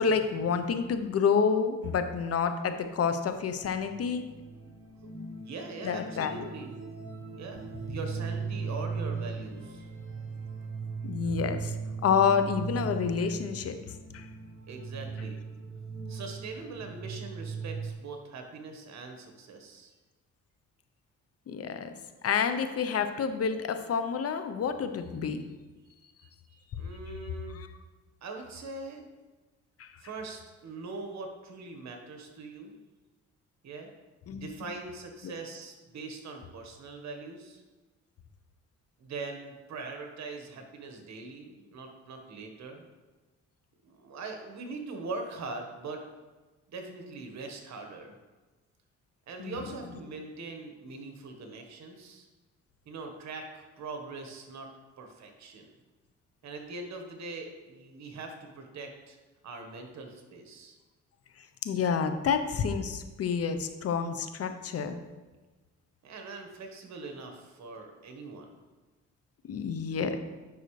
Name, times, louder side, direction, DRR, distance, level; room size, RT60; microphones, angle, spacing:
voice 1, 0.0-4.3 5.8-6.5 7.9-8.0 11.0-11.7 12.0-14.3 21.5-21.9 22.2-25.4 27.5-27.7 29.8-30.0 34.3-34.5 35.2-35.3 49.4-49.7 61.4-65.0 69.5-70.2, left 6 dB, 50° left, 8 dB, 0.7 m, -29 dB
sound 1, 3.3-17.9, right 5 dB, 45° right, 1.2 m, -38 dB
voice 2, 5.4-6.8 7.3-9.9 14.7-15.4 16.1-19.9 26.5-27.6 28.2-29.0 30.0-32.8 33.6-33.9 34.3-37.6 39.0-42.8 43.8-46.0 46.7-48.1 49.3-52.3 52.8-54.7 55.0-55.7 56.4-59.2 59.4-60.8 66.0-68.6, right 3 dB, 65° right, 4 dB, 1.3 m, -42 dB
9.3 x 5.6 x 3.2 m, 1.2 s
cardioid pair, 90°, 30 cm